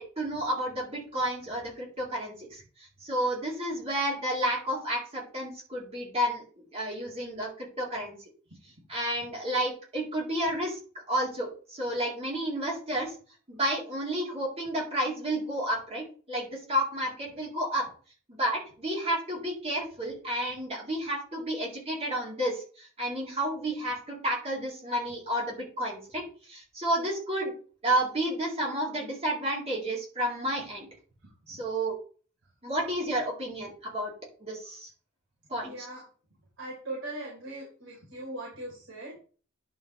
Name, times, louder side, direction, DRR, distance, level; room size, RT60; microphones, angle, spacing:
voice 1, 0.0-2.6 3.0-6.4 6.7-8.2 8.9-10.8 11.1-13.1 13.5-17.9 18.3-26.2 26.5-27.5 27.8-30.9 31.5-31.9 32.6-34.1 34.4-34.9 35.5-35.9, right 1 dB, 30° right, -4 dB, 3.9 m, -31 dB
voice 2, 35.6-36.0 36.6-39.2, right 1 dB, 70° right, -5 dB, 4.3 m, -40 dB
11.0 x 5.9 x 3.4 m, 0.39 s
head